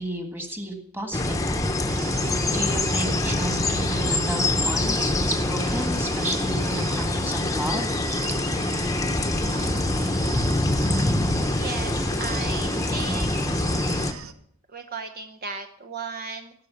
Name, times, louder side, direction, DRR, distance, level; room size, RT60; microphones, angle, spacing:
voice 1, 0.0-1.7 2.5-7.9, right 1 dB, 10° right, 4 dB, 1.8 m, -32 dB
sound 1, 1.1-14.1, left 2 dB, 15° left, 0.9 m, -25 dB
sound 2, 1.9-14.3, right 8 dB, 75° right, 0.9 m, -39 dB
voice 2, 11.4-13.4 14.7-16.5, right 4 dB, 45° right, 5 dB, 0.8 m, -35 dB
16.5 x 6.5 x 7.2 m, 0.66 s
head